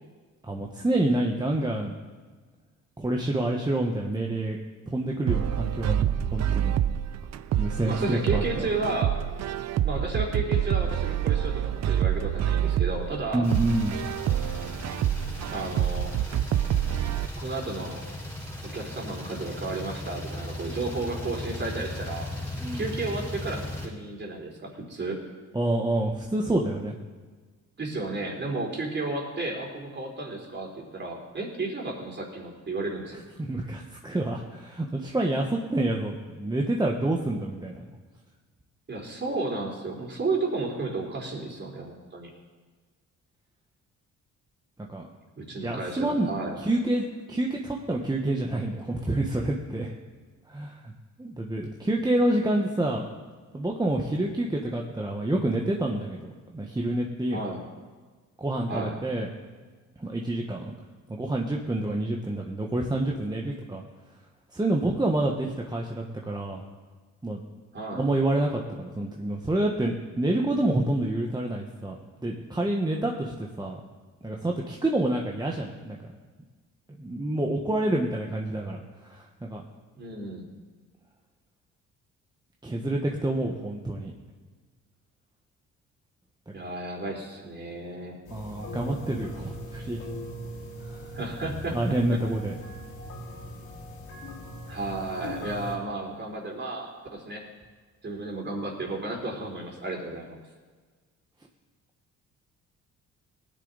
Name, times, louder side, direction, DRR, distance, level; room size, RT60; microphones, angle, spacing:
voice 1, 0.4-1.9 3.0-4.6 4.9-6.7 7.6-8.7 13.3-14.0 22.6-22.9 25.5-26.9 33.4-37.9 44.9-45.1 45.6-46.3 46.6-49.9 50.5-50.9 51.2-53.0 53.5-57.4 58.4-59.3 60.0-60.7 61.1-63.8 64.5-66.6 67.2-67.4 67.9-73.8 74.2-76.0 77.0-78.8 79.0-79.6 82.6-84.1 88.3-90.1 90.8-91.1 91.7-92.5, right 1 dB, 15° right, 0 dB, 1.3 m, -28 dB
sound 1, 5.3-17.3, right 10 dB, 60° right, 0.6 m, -27 dB
voice 2, 7.9-9.2 9.8-13.5 15.5-16.1 17.4-18.0 18.7-22.3 22.7-25.2 27.8-33.2 38.9-42.3 45.4-46.6 57.3-57.6 58.7-59.0 67.7-68.1 79.9-80.5 86.5-88.2 91.1-91.8 92.1-92.2 94.7-97.4 98.0-100.4, right 2 dB, 35° right, 0 dB, 3.8 m, -33 dB
sound 2, 13.4-23.9, left 1 dB, 10° left, 4.7 m, -37 dB
sound 3, 88.2-95.8, left 1 dB, 90° left, 3.0 m, -40 dB
18.5 x 10.5 x 4.1 m, 1.4 s
cardioid pair, 90°, 30 cm